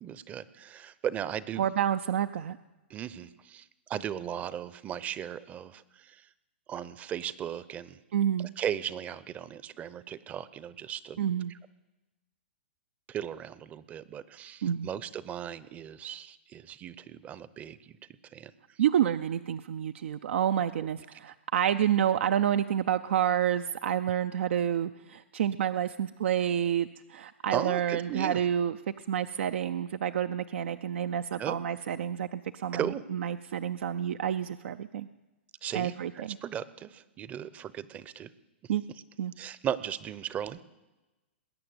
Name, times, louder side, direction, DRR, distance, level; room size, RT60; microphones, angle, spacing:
voice 1, 0.0-1.7 2.9-6.3 6.7-8.0 8.4-11.2 13.1-18.0 18.3-18.5 21.0-21.1 27.5-28.4 31.3-31.6 32.7-33.0 35.6-38.3 39.4-40.7, right 9 dB, 20° right, 17 dB, 0.6 m, -37 dB
voice 2, 1.6-2.6 8.1-8.5 11.2-11.5 14.6-14.9 18.8-28.7 29.1-35.1 35.7-36.4 38.7-38.8 39.2-39.3, right 9 dB, 75° right, 9 dB, 0.5 m, -29 dB
20.5 x 8.8 x 7.9 m, 1.1 s
hypercardioid pair, 135°, 7 cm